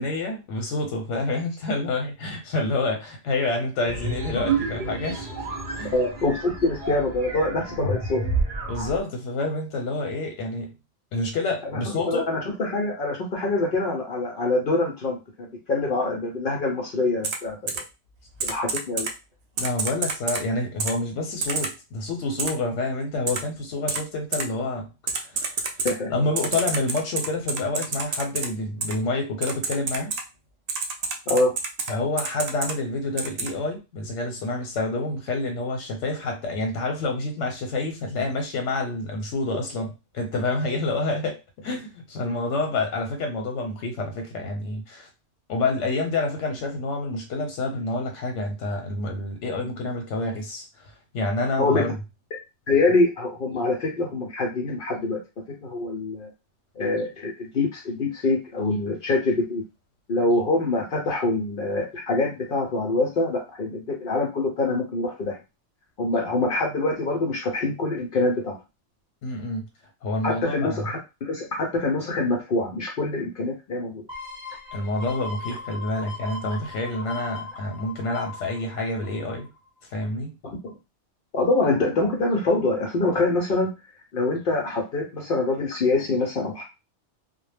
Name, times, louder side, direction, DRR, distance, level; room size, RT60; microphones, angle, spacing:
voice 1, 0.0-5.3 5.8-5.9 8.7-10.7 11.1-12.3 19.6-25.6 26.1-30.1 31.9-45.1 45.5-51.9 69.2-69.7 70.0-70.9 74.7-79.5 79.9-80.3, left 2 dB, 85° left, 1.0 m, -28 dB
sound 1, 3.8-9.0, right 3 dB, 50° right, 0.7 m, -29 dB
voice 2, 5.9-8.2 11.7-11.8 12.0-17.7 18.4-19.1 25.8-26.1 31.3-31.5 51.6-51.9 52.7-55.2 55.6-56.3 56.8-59.6 60.1-65.4 66.0-68.6 70.2-74.0 80.4-80.7 81.3-83.7 84.1-86.6, left 2 dB, 55° left, 0.7 m, -25 dB
Typing, 17.2-17.4 17.7-17.8 18.4-19.1 19.6-20.4 20.8-20.9 21.4-21.7 22.4-22.5 23.3-23.4 23.9-24.0 24.3-24.4 25.1-25.9 26.4-28.5 28.8-28.9 29.4-30.2 30.7-31.9 32.2-32.7 33.2-33.5, right 4 dB, 70° right, 0.3 m, -27 dB
sound 2, 74.1-79.6 80.0-80.1, left 3 dB, 5° right, 0.8 m, -39 dB
2.1 x 2.0 x 3.2 m
omnidirectional pair, 1.2 m